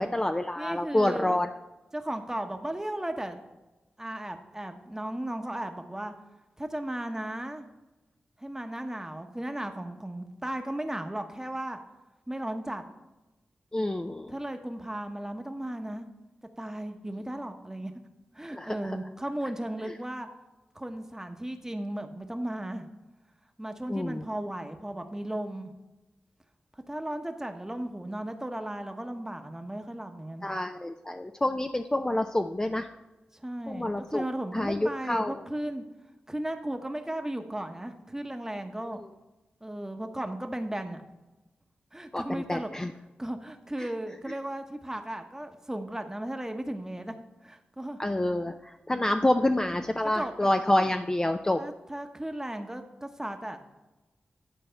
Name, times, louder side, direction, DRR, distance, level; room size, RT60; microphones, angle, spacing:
voice 1, 0.0-1.5 13.7-14.3 18.5-18.7 23.9-24.2 30.4-32.9 33.7-34.2 34.5-35.3 42.1-42.9 43.8-43.9 48.0-48.5 48.9-51.6, left 1 dB, 20° left, 6 dB, 0.4 m, -27 dB
voice 2, 0.6-1.3 1.9-3.4 4.0-6.1 6.6-7.6 8.4-11.8 12.3-12.8 14.3-16.1 16.6-17.9 18.3-20.3 20.7-22.9 23.6-25.7 26.9-30.5 33.3-35.8 36.3-39.0 39.6-41.0 41.9-42.7 43.2-47.2 47.4-48.0 50.0-50.5 51.6-53.6, right 1 dB, 15° right, 6 dB, 1.0 m, -35 dB
10.0 x 4.1 x 5.6 m, 1.1 s
cardioid pair, 55°, 4 cm